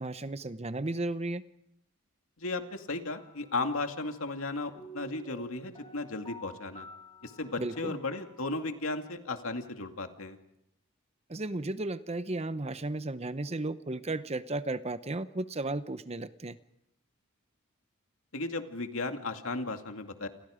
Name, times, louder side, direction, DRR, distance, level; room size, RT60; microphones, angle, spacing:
voice 1, 0.0-1.4 7.6-8.0 11.3-16.6, right 2 dB, 30° right, 12 dB, 0.8 m, -34 dB
voice 2, 2.4-6.9 7.2-10.4 18.3-20.3, left 3 dB, 80° left, 5 dB, 2.3 m, -35 dB
sound 1, 3.1-9.6, right 1 dB, 25° left, 2.9 m, -51 dB
29.0 x 27.5 x 5.1 m, 0.81 s
head